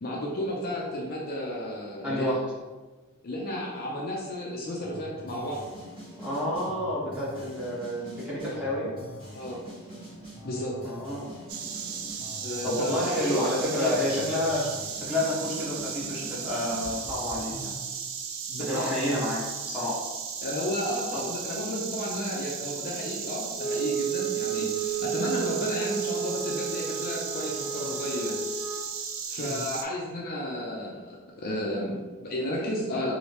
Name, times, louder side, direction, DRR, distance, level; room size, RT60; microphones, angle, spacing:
voice 1, 0.0-2.3 3.2-5.6 9.3-9.6 10.4-10.8 12.4-13.4 13.8-13.9 18.5-19.2 20.4-28.3 29.3-33.1, left 1 dB, 40° left, -3 dB, 0.4 m, -33 dB
voice 2, 2.0-2.4 6.2-8.9 10.8-11.3 12.0-12.1 12.6-14.7 15.0-17.8 18.7-20.0 21.1-21.2 29.4-29.6, left 1 dB, 5° right, -9 dB, 1.1 m, -29 dB
sound 1, 4.8-17.7, equal, 20° right, 1.5 m, -44 dB
Insect, 11.5-29.8, right 6 dB, 60° right, 0.4 m, -36 dB
Wind instrument woodwind instrument, 23.5-28.8, right 7 dB, 15° left, 1.3 m, -32 dB
3.2 x 2.7 x 2.9 m, 1.3 s
head